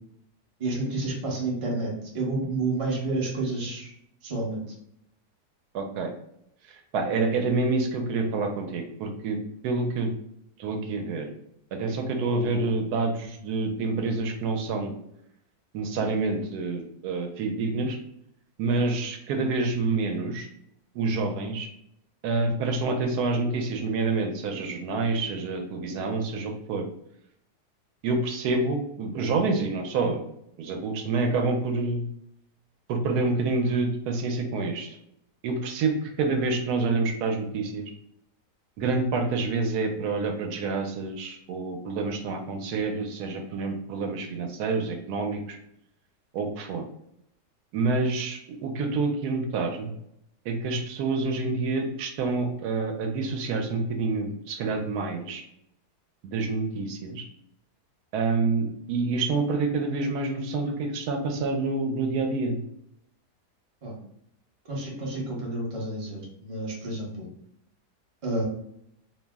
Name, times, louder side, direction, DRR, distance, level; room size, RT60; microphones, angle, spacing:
voice 1, 0.6-3.9 4.2-4.6 63.8-64.0 64.7-67.3 68.2-68.4, right 2 dB, 35° right, -3 dB, 0.5 m, -30 dB
voice 2, 5.7-6.1 6.9-9.4 9.6-10.1 10.6-11.3 11.7-14.9 15.7-18.0 18.6-20.5 20.9-21.7 22.2-26.9 28.0-30.3 30.6-32.1 32.9-35.0 35.4-37.8 38.8-45.6 46.3-46.8 47.7-49.9 50.5-55.4 56.2-57.2 58.1-62.6, right 3 dB, 75° right, 4 dB, 1.1 m, -27 dB
2.8 x 2.0 x 3.4 m, 0.74 s
omnidirectional pair, 1.7 m